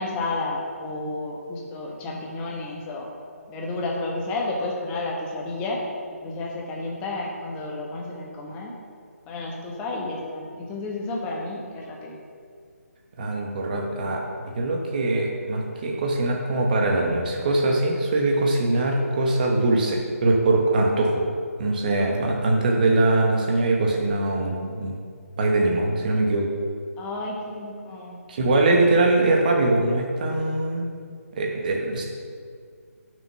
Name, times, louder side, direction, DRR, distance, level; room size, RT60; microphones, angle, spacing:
voice 1, 0.0-3.1 3.5-5.8 6.2-8.8 9.3-12.2 27.0-28.2, left 2 dB, 15° left, -1 dB, 1.1 m, -31 dB
voice 2, 13.2-21.3 21.6-24.9 25.4-26.5 28.3-30.9 31.4-32.0, right 2 dB, 35° right, 0 dB, 1.3 m, -22 dB
9.3 x 6.3 x 6.0 m, 2.2 s
figure-of-eight pair, 145°, 8 cm